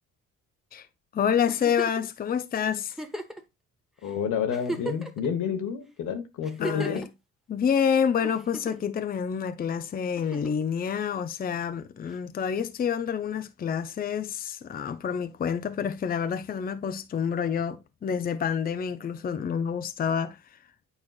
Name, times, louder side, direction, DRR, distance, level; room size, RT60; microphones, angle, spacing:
voice 1, 1.1-3.0 6.6-7.1 7.5-20.4, left 7 dB, 30° left, 0.5 m, -28 dB
Giggle, 1.5-2.1 2.9-3.4 4.0-4.1 4.5-5.3 6.4-7.1 8.2-8.9 10.2-10.6 12.1-12.2, right 1 dB, ahead, 1.0 m, -36 dB
voice 2, 4.0-7.0, left 7 dB, 80° left, 1.2 m, -29 dB
8.7 x 4.6 x 2.4 m
cardioid pair, 90°, 30 cm